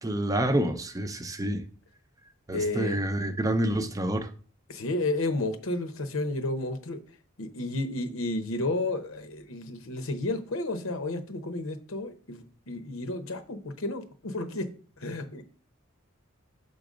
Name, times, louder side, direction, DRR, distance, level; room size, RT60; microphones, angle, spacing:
voice 1, 0.0-1.6 2.5-4.3, right 1 dB, 15° right, 0.6 m, -28 dB
voice 2, 2.5-3.0 4.7-7.0 7.4-14.7 15.0-15.4, left 2 dB, 75° left, 0.9 m, -32 dB
6.8 x 3.9 x 5.0 m
head